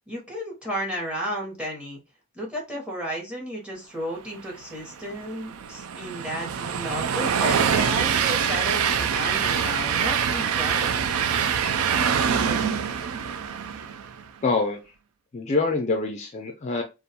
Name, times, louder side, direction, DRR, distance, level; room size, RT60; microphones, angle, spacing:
voice 1, 0.1-2.0 2.3-11.2, equal, 5° right, -1 dB, 0.8 m, -33 dB
Train, 4.8-14.2, right 7 dB, 70° right, 0.3 m, -25 dB
voice 2, 14.4-14.8 15.3-16.8, left 3 dB, 30° left, 3 dB, 0.4 m, -25 dB
2.4 x 2.2 x 2.8 m, 0.26 s
head